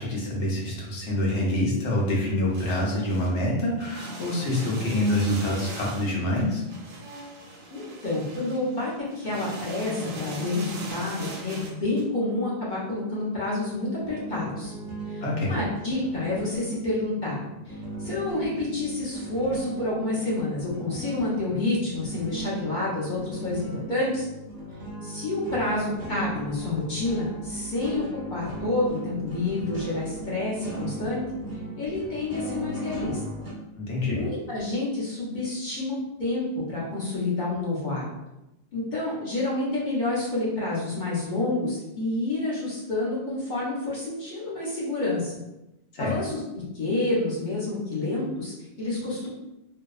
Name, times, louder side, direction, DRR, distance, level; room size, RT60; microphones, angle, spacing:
voice 1, 0.0-6.6 15.2-15.5 33.8-34.2 45.9-46.1, left 1 dB, 75° left, -3 dB, 1.0 m, -26 dB
sound 1, 1.9-2.0 2.5-3.4 3.7-12.0, right 3 dB, 60° right, 0.6 m, -39 dB
voice 2, 7.7-8.9 9.2-14.7 15.1-17.4 17.7-24.3 25.0-28.0 28.3-31.2 31.8-33.2 34.0-38.0 38.7-45.4 46.0-46.4 46.7-49.3, left 2 dB, 45° left, -7 dB, 0.8 m, -29 dB
sound 2, 14.0-33.5, right 1 dB, 20° right, 0.6 m, -37 dB
2.7 x 2.1 x 2.3 m, 0.93 s
omnidirectional pair, 1.2 m